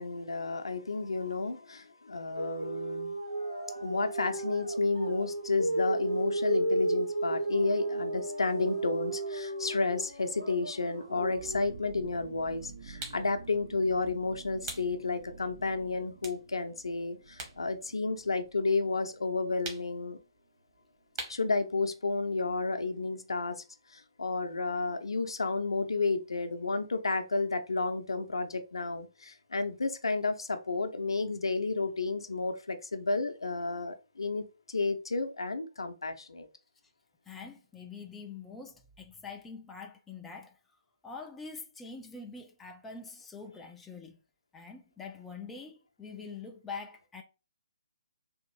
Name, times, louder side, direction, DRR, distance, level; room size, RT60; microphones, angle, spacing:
voice 1, 0.0-3.2 3.8-20.2 21.3-23.6 23.9-36.5, left 3 dB, 65° left, 0.6 m, -32 dB
sound 1, 2.4-11.6, right 2 dB, 85° right, 1.4 m, -33 dB
sound 2, 11.1-20.5 20.8-20.9 21.2-21.5, right 5 dB, 45° right, 0.6 m, -50 dB
sound 3, 13.0-13.3 14.6-14.9 15.4-15.5 16.2-17.6 17.9-19.0 19.6-20.0 21.2-21.5, right 3 dB, 30° right, 1.0 m, -42 dB
voice 2, 37.3-40.6 41.0-44.2 44.5-47.2, left 4 dB, 5° left, 0.4 m, -44 dB
3.5 x 2.5 x 3.1 m
figure-of-eight pair, 135°, 3 cm